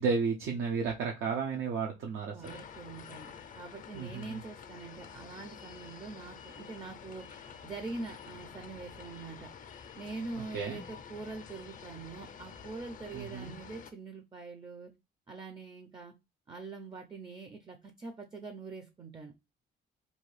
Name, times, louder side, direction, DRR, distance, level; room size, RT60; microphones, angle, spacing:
voice 1, 0.0-2.6 3.9-4.4 10.3-10.8 13.1-13.6, right 5 dB, 80° right, 0 dB, 0.6 m, -33 dB
voice 2, 2.3-7.3 7.6-9.5 9.9-14.9 15.3-16.1 16.5-19.3, right 3 dB, 25° right, 5 dB, 0.4 m, -44 dB
sound 1, 2.4-13.9, left 7 dB, 45° left, 0.4 m, -49 dB
2.7 x 2.3 x 3.1 m, 0.24 s
cardioid pair, 90°, 20 cm